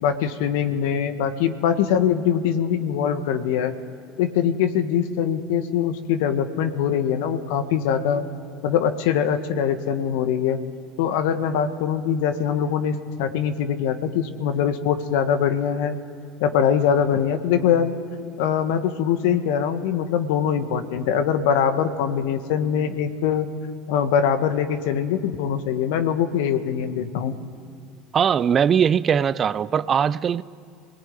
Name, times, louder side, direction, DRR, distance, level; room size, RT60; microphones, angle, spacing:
voice 1, 0.0-3.7 4.2-8.2 8.6-10.6 11.0-16.0 16.4-17.9 18.4-23.5 23.9-27.4, left 8 dB, 70° left, 1.7 m, -22 dB
voice 2, 28.1-30.4, right 7 dB, 40° right, 0.6 m, -20 dB
26.0 x 19.5 x 9.5 m
hypercardioid pair, 70°, 0 cm